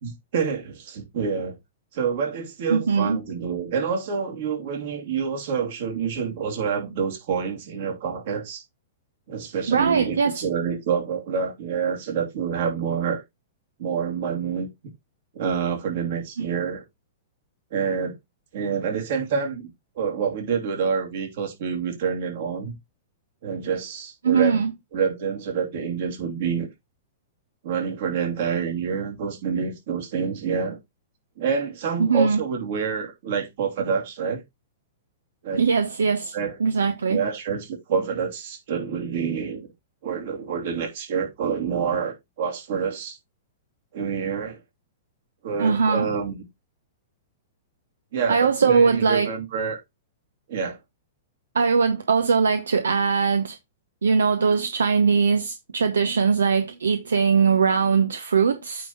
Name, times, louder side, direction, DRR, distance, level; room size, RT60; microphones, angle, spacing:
voice 1, 0.0-1.6 1.9-8.6 9.3-13.2 13.8-14.7 15.3-16.8 17.7-18.1 18.5-19.7 20.0-22.8 23.4-24.6 24.9-26.7 27.6-30.8 31.4-34.4 35.4-35.6 36.3-36.6 37.1-39.7 40.0-43.2 43.9-44.6 45.4-46.4 48.1-49.8 50.5-50.8, right 6 dB, 60° right, 2.8 m, -27 dB
voice 2, 2.7-3.2 9.7-10.4 16.4-16.5 24.2-24.7 32.0-32.4 35.5-36.3 36.6-37.2 45.6-46.1 48.3-49.3 51.5-53.6 54.0-58.9, right 5 dB, 85° right, 0.8 m, -21 dB
8.9 x 3.9 x 4.4 m
hypercardioid pair, 115°, 0 cm